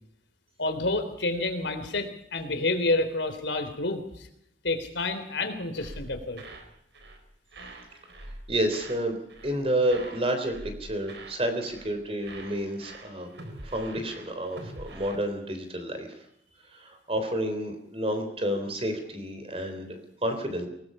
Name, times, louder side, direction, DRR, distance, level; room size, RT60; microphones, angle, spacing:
voice 1, 0.6-4.3 4.6-6.4, left 2 dB, 80° left, 8 dB, 3.5 m, -29 dB
sound 1, 5.8-6.7 6.9-7.2 7.5-9.0 9.3-9.6 9.9-11.4 11.7-12.0 12.2-15.2, right 1 dB, 75° right, 4.0 m, -45 dB
voice 2, 8.5-9.2 9.4-10.5 10.8-13.3 13.7-16.1 16.7-20.7, right 1 dB, 30° right, 7 dB, 3.6 m, -30 dB
23.5 x 20.0 x 5.6 m, 0.76 s
head